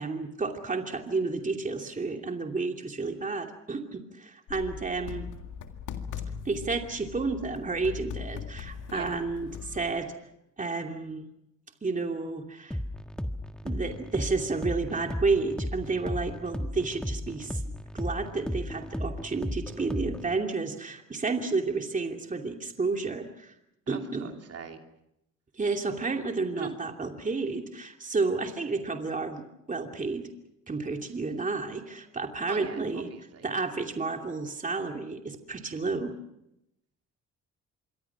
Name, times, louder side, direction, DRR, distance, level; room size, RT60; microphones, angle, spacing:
voice 1, 0.0-5.3 6.4-10.1 10.6-11.2 11.8-12.8 13.6-17.6 17.9-23.5 23.9-24.4 25.6-30.3 30.7-33.1 33.4-36.1, right 3 dB, 25° right, 3 dB, 2.7 m, -31 dB
sound 1, 4.5-9.9, left 7 dB, 85° left, 2.1 m, -40 dB
sound 2, 12.7-20.4, left 1 dB, 5° left, 1.5 m, -35 dB
voice 2, 23.9-24.8 26.6-26.8 32.5-33.4, right 6 dB, 55° right, 4 dB, 2.9 m, -40 dB
26.5 x 24.0 x 6.0 m, 0.84 s
cardioid pair, 90°, 30 cm